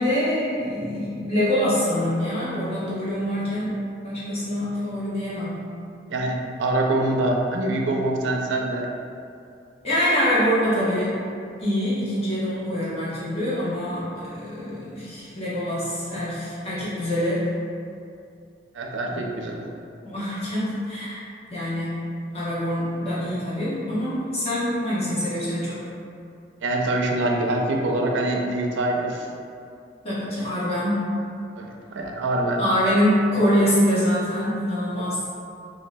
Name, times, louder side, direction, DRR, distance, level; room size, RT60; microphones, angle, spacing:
voice 1, 0.0-5.6 9.8-11.1 11.6-17.5 19.1-19.2 20.0-21.2 21.5-22.1 22.3-25.8 30.0-31.1 32.6-35.2, equal, 30° left, -10 dB, 1.0 m, -25 dB
voice 2, 6.1-8.9 18.7-19.7 26.6-29.3 31.6-32.6 35.0-35.1, right 2 dB, 80° right, 1 dB, 0.4 m, -24 dB
5.8 x 2.3 x 2.2 m, 2.5 s
head